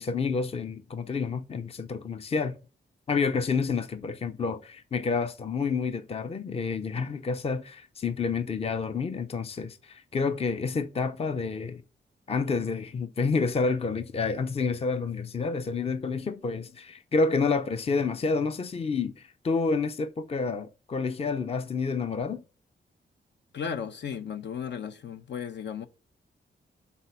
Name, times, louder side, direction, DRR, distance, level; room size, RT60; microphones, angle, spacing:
voice 1, 0.0-2.5 3.1-11.8 12.3-22.4, left 4 dB, 30° left, 0.6 m, -29 dB
voice 2, 23.5-25.9, left 7 dB, 65° left, 0.9 m, -35 dB
11.0 x 4.1 x 5.8 m
wide cardioid pair, 175°, 19 cm